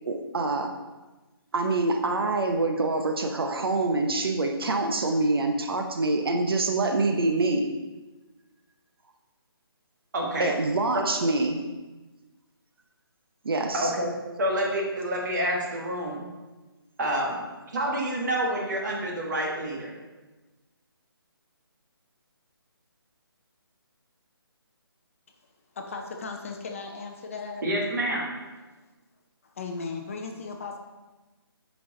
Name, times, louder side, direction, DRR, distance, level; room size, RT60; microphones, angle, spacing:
voice 1, 0.1-0.7 1.5-7.7 10.4-11.6 13.4-13.9, right 2 dB, 70° right, 4 dB, 0.7 m, -25 dB
voice 2, 10.1-10.5 13.7-14.1 14.4-16.2 17.0-17.4 17.7-19.9 27.6-28.3, right 1 dB, 50° right, -2 dB, 1.6 m, -28 dB
voice 3, 25.7-27.7 29.4-30.8, left 4 dB, 35° left, 3 dB, 0.6 m, -36 dB
6.8 x 4.5 x 3.7 m, 1.2 s
hypercardioid pair, 160°, 13 cm